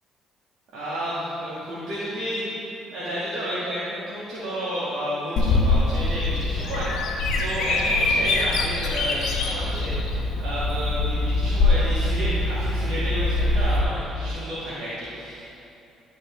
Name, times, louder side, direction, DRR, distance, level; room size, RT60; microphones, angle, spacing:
voice 1, 0.7-2.4 2.9-15.5, equal, 70° right, -10 dB, 1.8 m, -31 dB
Bird vocalization bird call bird song, 5.4-13.8, left 2 dB, 75° left, 1.2 m, -23 dB
12.5 x 4.7 x 3.2 m, 2.8 s
supercardioid pair, 70°, 0 cm